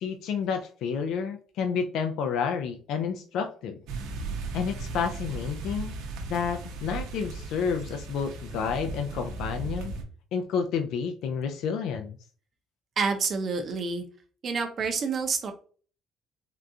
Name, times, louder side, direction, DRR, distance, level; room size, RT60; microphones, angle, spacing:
voice 1, 0.0-3.8 4.5-5.9 6.3-9.9 10.3-12.2, left 6 dB, 60° left, 5 dB, 0.3 m, -30 dB
sound 1, 3.9-10.0, right 3 dB, 80° right, 0.7 m, -36 dB
voice 2, 13.0-14.0 14.4-15.5, right 5 dB, 30° right, 4 dB, 0.5 m, -28 dB
3.6 x 2.3 x 2.6 m, 0.41 s
cardioid pair, 170°, 0 cm